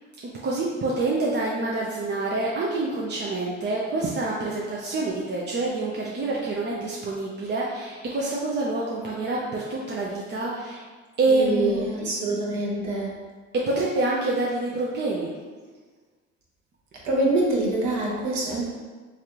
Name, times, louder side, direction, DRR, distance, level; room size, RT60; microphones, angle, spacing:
voice 1, 0.2-10.8 11.2-12.1 13.5-15.3, right 2 dB, 30° right, -4 dB, 0.5 m, -27 dB
voice 2, 11.3-13.1 17.0-18.7, right 2 dB, 55° right, -3 dB, 1.0 m, -25 dB
3.2 x 2.5 x 2.9 m, 1.4 s
hypercardioid pair, 65°, 33 cm